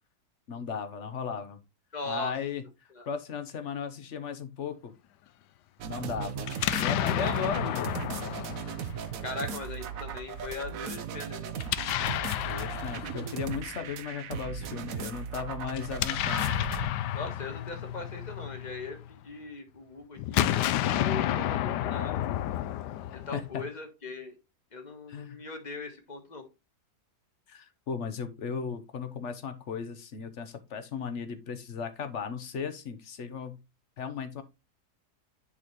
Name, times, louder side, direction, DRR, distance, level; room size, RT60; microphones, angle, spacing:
voice 1, 0.5-1.6 2.0-2.6 3.1-4.9 5.8-6.5 6.8-7.9 12.3-16.5 23.1-23.6 25.1-25.4 27.5-33.6 34.0-34.4, left 6 dB, 55° left, 10 dB, 1.0 m, -36 dB
voice 2, 1.9-2.3 2.9-3.0 7.2-7.4 9.2-11.5 17.1-20.6 20.8-22.3 23.1-24.4 24.7-26.4, left 3 dB, 30° left, 4 dB, 1.3 m, -39 dB
sound 1, 5.8-16.9, right 8 dB, 65° right, 1.1 m, -37 dB
Explosion, 6.4-9.5 11.6-13.8 15.7-19.1 20.2-23.6, left 12 dB, 90° left, 1.2 m, -31 dB
9.7 x 4.1 x 3.0 m, 0.26 s
omnidirectional pair, 1.7 m